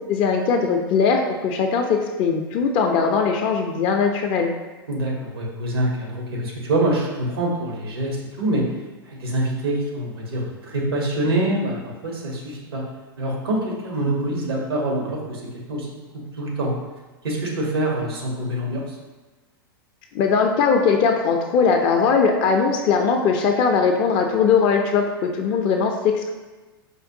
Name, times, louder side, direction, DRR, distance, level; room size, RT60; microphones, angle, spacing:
voice 1, 0.1-4.5 20.1-26.3, left 5 dB, 40° left, 3 dB, 0.4 m, -20 dB
voice 2, 4.9-8.6 9.0-12.8 13.2-15.4 15.7-15.9 16.4-16.7 17.2-18.9, right 1 dB, 85° right, -1 dB, 1.0 m, -25 dB
5.0 x 2.2 x 2.6 m, 1.2 s
hypercardioid pair, 110°, 12 cm